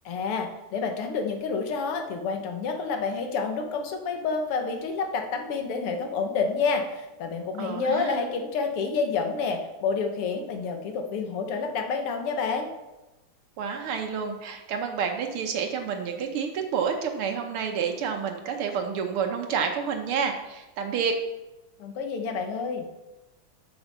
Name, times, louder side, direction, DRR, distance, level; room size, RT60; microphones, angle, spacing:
voice 1, 0.1-12.7 21.8-22.9, left 5 dB, 85° left, 4 dB, 2.0 m, -29 dB
voice 2, 7.6-8.2 13.6-21.2, right 6 dB, 80° right, 4 dB, 1.7 m, -29 dB
7.9 x 6.9 x 5.5 m, 1.0 s
omnidirectional pair, 2.4 m